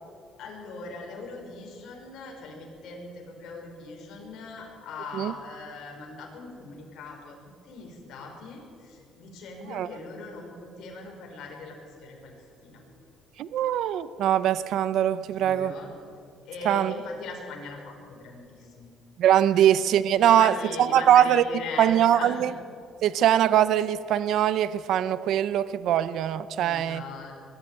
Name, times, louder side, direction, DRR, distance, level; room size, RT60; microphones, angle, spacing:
voice 1, 0.4-7.4 7.6-12.4 12.6-12.8 15.3-15.9 16.4-18.9 19.5-19.7 20.1-22.4 26.5-27.4, left 3 dB, 65° left, 1 dB, 5.6 m, -40 dB
voice 2, 13.4-15.7 16.6-16.9 19.2-21.4 21.8-22.5 23.0-27.0, right 11 dB, 65° right, 15 dB, 0.7 m, -22 dB
22.0 x 13.5 x 9.2 m, 2.4 s
cardioid pair, 130°, 0 cm